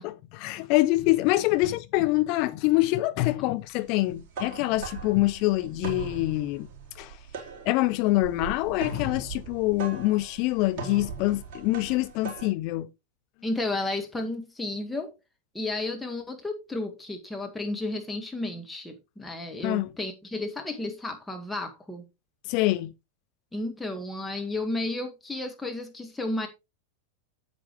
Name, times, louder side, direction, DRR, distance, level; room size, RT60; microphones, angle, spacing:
voice 1, 0.0-6.7 7.0-7.2 7.6-12.9 19.6-19.9 22.5-22.9, left 18 dB, 45° left, 0.6 m, -25 dB
sound 1, 4.1-12.5, right 4 dB, 45° right, 4.3 m, -39 dB
voice 2, 13.4-15.1 15.5-22.0 23.5-26.5, left 2 dB, 5° left, 1.8 m, -32 dB
9.3 x 8.6 x 3.2 m
figure-of-eight pair, 90°, 0 cm